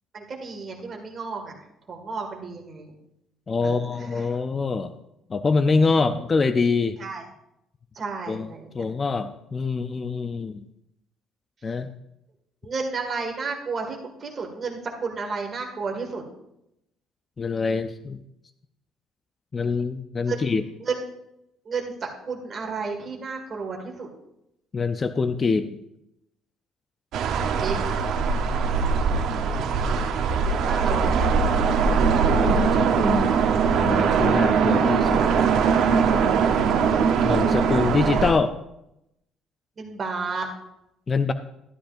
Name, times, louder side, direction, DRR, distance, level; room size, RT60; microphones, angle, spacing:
voice 1, 0.1-1.6 1.9-2.9 3.6-4.4 7.0-7.2 7.9-8.8 12.6-16.2 20.3-20.4 20.8-21.0 21.7-24.1 27.6-27.8 30.5-31.2 39.8-40.5, right 4 dB, 35° right, 1 dB, 2.0 m, -32 dB
voice 2, 3.5-4.9 5.3-7.0 8.3-8.5 8.7-10.6 11.6-11.9 17.4-18.2 19.5-20.6 24.7-25.8 32.3-33.3 33.7-35.3 37.2-38.5 41.1-41.3, left 4 dB, 25° left, 10 dB, 0.4 m, -25 dB
sound 1, 27.1-38.3, right 6 dB, 65° right, 0.9 m, -21 dB
12.5 x 11.5 x 2.6 m, 0.82 s
cardioid pair, 130°, 0 cm